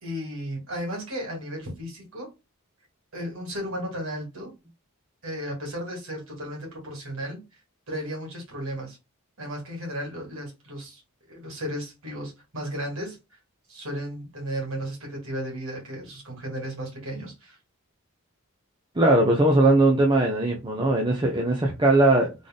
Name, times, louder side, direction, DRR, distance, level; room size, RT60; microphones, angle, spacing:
voice 1, 0.0-2.3 3.1-4.5 5.2-7.4 7.9-9.0 9.4-11.0 11.3-13.2 13.7-17.6, equal, 60° right, 2.5 m, -34 dB
voice 2, 19.0-22.3, right 2 dB, 20° right, 0.8 m, -20 dB
3.9 x 3.2 x 3.8 m
head